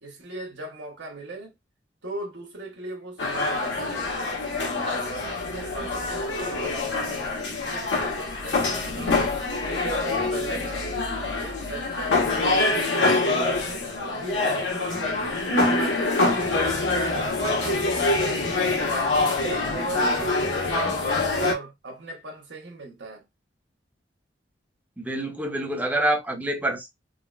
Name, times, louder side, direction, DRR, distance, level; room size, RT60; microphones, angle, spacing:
voice 1, 0.0-1.5 2.0-4.3 4.9-9.3 9.6-10.9 11.4-13.9 14.1-15.0 15.5-19.0 19.4-23.2, right 3 dB, 70° right, 1.0 m, -38 dB
sound 1, 3.2-21.5, left 3 dB, 85° left, 0.9 m, -25 dB
voice 2, 25.0-26.9, right 1 dB, 10° right, 0.6 m, -26 dB
3.7 x 2.0 x 2.3 m
head